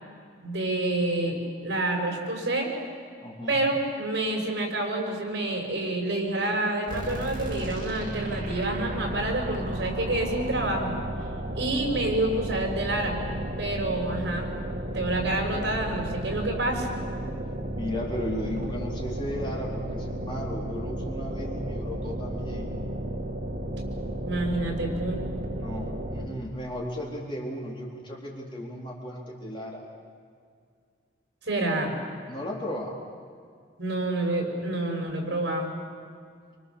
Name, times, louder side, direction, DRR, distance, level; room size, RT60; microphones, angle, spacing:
voice 1, 0.4-2.7 3.5-10.9 11.6-13.2 13.6-14.5 14.9-16.9 24.2-25.2 31.5-31.9 33.8-35.7, right 2 dB, 65° right, 1 dB, 6.1 m, -28 dB
voice 2, 3.2-3.6 17.8-22.7 25.6-29.8 32.3-33.0, left 1 dB, 25° left, -3 dB, 4.1 m, -35 dB
sound 1, 6.9-26.5, right 1 dB, 45° right, 3.1 m, -33 dB
27.0 x 26.0 x 7.2 m, 2.1 s
head